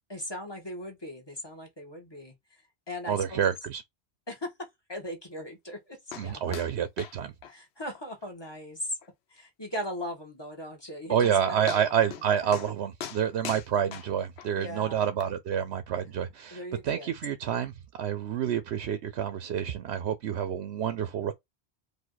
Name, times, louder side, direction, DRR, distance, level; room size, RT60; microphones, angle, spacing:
voice 1, 0.1-2.6 2.9-3.4 4.3-6.5 7.5-9.0 9.3-12.2 12.6-12.7 14.6-15.1 16.5-17.2, equal, 25° left, 1.6 m, -39 dB
voice 2, 3.1-3.8 6.2-7.3 11.1-21.3, right 9 dB, 85° right, 0.9 m, -28 dB
sound 1, 6.1-6.3 6.5-6.7 7.0-7.2 7.4-7.5 7.9-8.0 8.4-8.5 9.0-9.1 10.8-10.9 11.2-11.4 11.7-12.2 12.5-12.7 13.0-14.5 15.2-15.3, left 9 dB, 80° left, 0.9 m, -40 dB
4.8 x 2.5 x 4.0 m
omnidirectional pair, 1.1 m